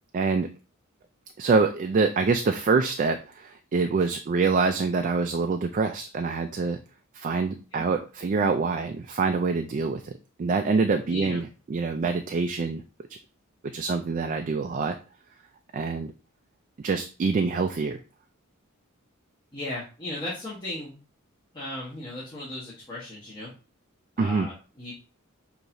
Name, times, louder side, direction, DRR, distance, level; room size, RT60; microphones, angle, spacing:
voice 1, 0.1-0.5 1.4-6.8 7.1-10.1 10.4-12.8 13.7-15.0 15.7-16.1 16.8-18.0 24.2-24.5, right 4 dB, 40° right, 6 dB, 0.3 m, -25 dB
voice 2, 11.1-11.4 19.5-21.0 21.5-23.5 24.2-24.9, left 1 dB, 20° left, -8 dB, 1.2 m, -36 dB
6.3 x 2.9 x 2.6 m, 0.34 s
head